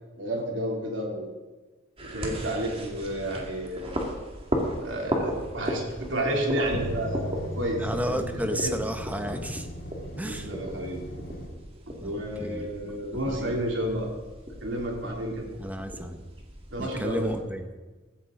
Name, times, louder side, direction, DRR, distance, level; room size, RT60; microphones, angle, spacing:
voice 1, 0.2-1.3 2.0-4.0 4.8-8.7 10.2-11.0 11.9-14.1 14.6-15.5 16.7-17.3, right 1 dB, 70° right, 0 dB, 3.0 m, -31 dB
sound 1, 2.0-17.4, equal, 30° right, 2.0 m, -36 dB
sound 2, 5.9-11.4, equal, 90° left, 3.9 m, -38 dB
voice 2, 7.8-9.7 10.2-10.5 12.0-12.7 13.3-13.6 15.6-16.2 16.8-17.7, equal, 10° right, 7 dB, 1.0 m, -32 dB
15.5 x 13.5 x 3.8 m, 1.3 s
head